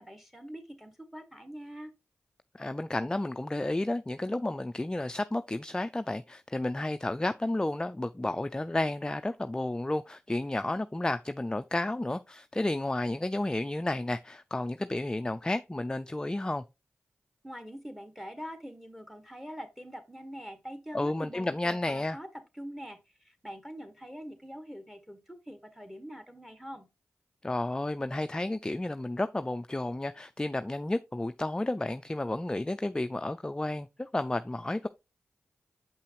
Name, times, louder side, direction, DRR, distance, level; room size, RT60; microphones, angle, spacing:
voice 1, 0.0-1.9 17.4-22.3 22.5-23.0 23.2-26.9, equal, 5° right, 1.6 m, -44 dB
voice 2, 2.5-16.6 20.9-22.2 27.4-34.9, left 2 dB, 15° left, 0.4 m, -32 dB
6.9 x 5.6 x 2.9 m
cardioid pair, 40°, 5 cm